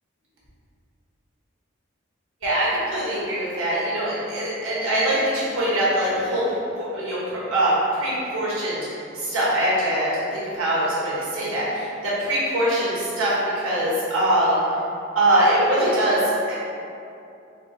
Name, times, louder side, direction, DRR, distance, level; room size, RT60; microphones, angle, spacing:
voice 1, 2.4-6.4 6.8-8.8 9.1-14.6 15.1-16.5, right 1 dB, 80° right, -8 dB, 1.4 m, -23 dB
4.3 x 2.1 x 4.1 m, 2.6 s
head